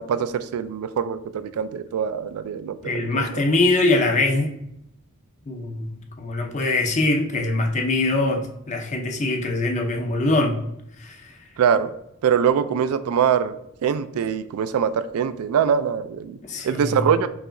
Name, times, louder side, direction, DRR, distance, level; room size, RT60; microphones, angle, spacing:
voice 1, 0.0-3.4 11.6-11.9 12.2-13.6 13.8-16.4 16.6-17.3, right 7 dB, 80° right, 13 dB, 0.3 m, -23 dB
voice 2, 2.8-4.5 5.5-10.6 11.0-11.3 16.4-17.1, left 2 dB, 30° left, 3 dB, 0.5 m, -23 dB
4.7 x 2.9 x 2.5 m, 0.80 s
head